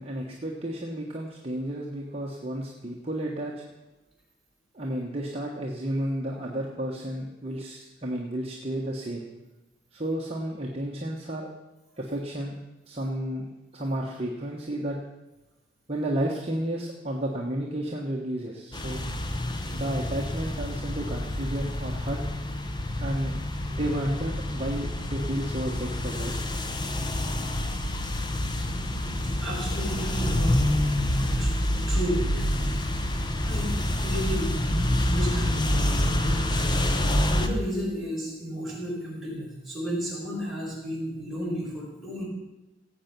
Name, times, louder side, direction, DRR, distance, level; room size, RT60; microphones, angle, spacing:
voice 1, 0.0-3.6 4.7-9.2 9.9-11.5 12.0-12.5 12.9-15.0 15.9-19.0 19.7-22.2 23.0-23.4 23.7-26.3, right 1 dB, 30° right, -2 dB, 1.3 m, -32 dB
sound 1, 18.7-37.5, left 1 dB, 20° left, 0.8 m, -27 dB
voice 2, 29.4-30.6 31.1-32.6 33.4-34.6 35.0-36.8 37.2-42.2, equal, ahead, -7 dB, 4.8 m, -33 dB
17.5 x 8.0 x 6.0 m, 1.0 s
head